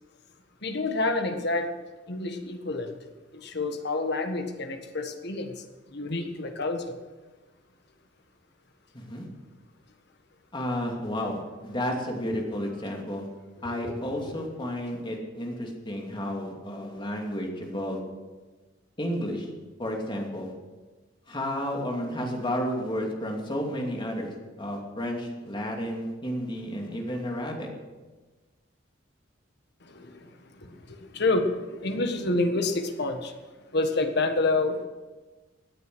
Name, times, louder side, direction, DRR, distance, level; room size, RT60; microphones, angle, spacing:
voice 1, 0.6-1.7 2.1-2.9 3.3-5.5 5.9-7.0 14.3-14.4 29.8-30.3 30.6-33.3 33.7-34.8, left 2 dB, 60° left, 6 dB, 1.6 m, -28 dB
voice 2, 8.9-9.3 10.5-13.3 13.6-18.0 19.0-19.5 19.8-20.5 21.3-27.7, equal, 25° left, 0 dB, 2.7 m, -32 dB
17.0 x 9.5 x 6.3 m, 1.2 s
head